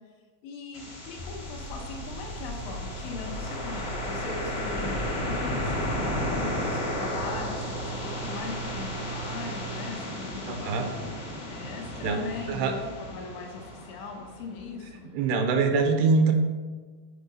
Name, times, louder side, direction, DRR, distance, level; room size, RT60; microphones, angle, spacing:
voice 1, 0.4-11.0 11.5-15.1, left 4 dB, 90° left, 1 dB, 3.5 m, -39 dB
sound 1, 0.7-14.6, left 1 dB, 60° left, 0.9 m, -34 dB
sound 2, 1.2-9.9, right 3 dB, 45° left, 0.4 m, -39 dB
voice 2, 10.5-10.9 12.0-12.8 15.1-16.3, right 4 dB, 80° right, 5 dB, 2.6 m, -24 dB
10.5 x 4.7 x 5.4 m, 1.4 s
omnidirectional pair, 5.2 m